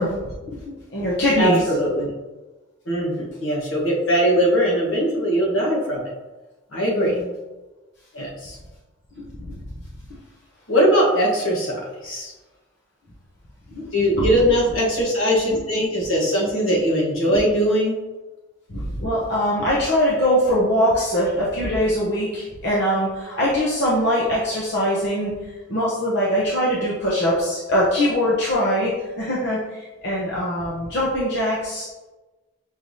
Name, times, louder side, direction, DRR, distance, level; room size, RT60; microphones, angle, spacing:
voice 1, 0.0-1.6 6.9-7.3 9.1-9.3 13.7-13.9 14.1-14.3 15.5-15.6 18.7-25.3 25.7-31.9, equal, 55° left, -7 dB, 0.8 m, -22 dB
voice 2, 1.4-2.1 2.9-6.1 6.7-7.1 8.1-8.6 10.7-12.3 13.9-18.0, equal, 75° left, -4 dB, 1.2 m, -20 dB
5.5 x 3.2 x 2.7 m, 1.1 s
head